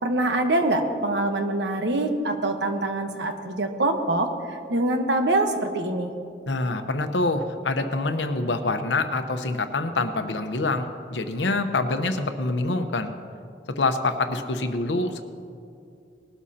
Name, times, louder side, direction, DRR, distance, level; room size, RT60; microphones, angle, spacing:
voice 1, 0.0-6.1, right 2 dB, 80° right, 5 dB, 1.2 m, -24 dB
voice 2, 6.5-13.1 13.8-15.2, left 2 dB, 85° left, 7 dB, 0.9 m, -26 dB
20.0 x 12.5 x 2.8 m, 2.5 s
head